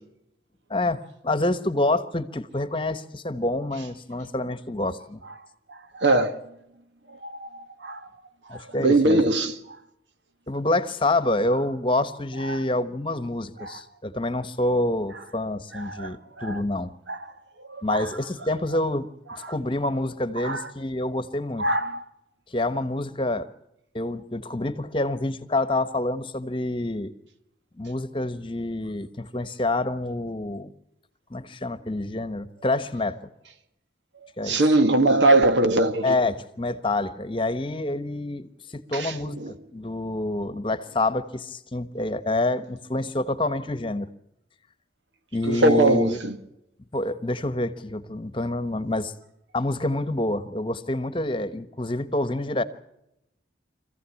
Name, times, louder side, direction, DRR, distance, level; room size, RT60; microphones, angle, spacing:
voice 1, 0.7-5.2 8.5-9.2 10.5-16.9 17.8-19.1 19.4-21.7 22.5-23.5 23.9-27.1 27.8-30.7 31.3-33.2 34.4-34.6 36.0-44.1 45.3-46.2 46.9-49.1 49.5-52.6, left 2 dB, 25° left, 1.1 m, -27 dB
voice 2, 5.7-6.4 7.2-8.0 8.5-9.6 12.5-12.6 13.6-13.8 15.7-16.6 17.1-17.2 17.7-18.1 19.4-19.5 20.4-20.7 21.6-22.0 34.4-36.2 38.9-39.5 45.4-46.4, right 2 dB, 80° right, 1.8 m, -22 dB
24.5 x 15.5 x 8.4 m
head